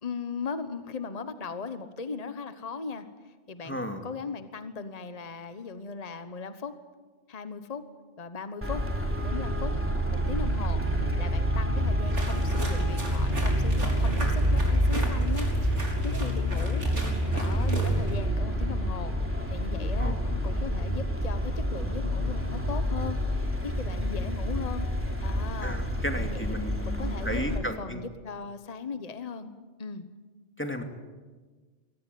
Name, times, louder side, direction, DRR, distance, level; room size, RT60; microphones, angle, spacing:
voice 1, 0.0-3.0 3.5-6.7 7.3-7.8 8.2-8.8 9.2-9.7 10.1-10.8 11.2-15.5 16.0-16.8 17.3-23.2 23.6-24.9 25.2-25.8 26.1-26.5 26.8-29.5 29.8-30.1, left 5 dB, 35° left, 10 dB, 1.2 m, -38 dB
voice 2, 3.6-4.1 20.0-20.2 25.6-28.0 30.6-30.8, equal, 10° left, 4 dB, 2.4 m, -34 dB
Traffic noise roadway noise, 8.6-27.6, equal, 10° right, 3.1 m, -28 dB
sound 1, 12.1-18.2, right 1 dB, 85° right, 4.6 m, -38 dB
23.5 x 18.0 x 9.3 m, 1.4 s
omnidirectional pair, 1.2 m